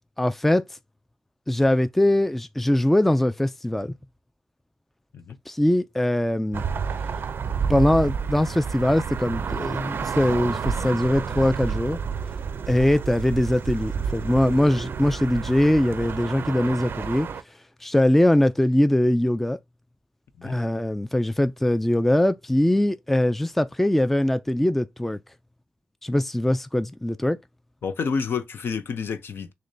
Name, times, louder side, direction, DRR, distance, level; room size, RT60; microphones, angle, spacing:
voice 1, 0.2-0.6 1.5-3.9 5.5-6.6 7.7-12.0 12.7-17.3 17.8-19.6 20.4-25.2 26.0-27.4, left 1 dB, 5° left, 0.3 m, -22 dB
sound 1, 6.5-17.4, right 6 dB, 65° right, 0.4 m, -30 dB
voice 2, 27.8-29.5, left 5 dB, 65° left, 0.6 m, -29 dB
6.4 x 2.2 x 2.6 m
cardioid pair, 70°, 4 cm